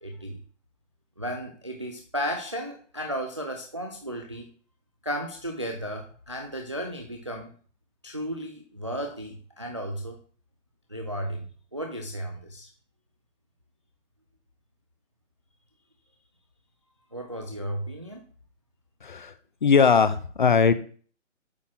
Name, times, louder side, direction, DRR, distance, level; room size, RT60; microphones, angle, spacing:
voice 1, 0.0-0.4 1.2-4.5 5.0-7.5 8.0-10.2 10.9-11.5 11.7-12.7 17.1-18.2, equal, 25° right, 3 dB, 0.4 m, -34 dB
voice 2, 19.0-19.3 19.6-20.7, left 6 dB, 40° left, 13 dB, 0.7 m, -20 dB
8.4 x 3.6 x 6.0 m, 0.43 s
hypercardioid pair, 170°, 37 cm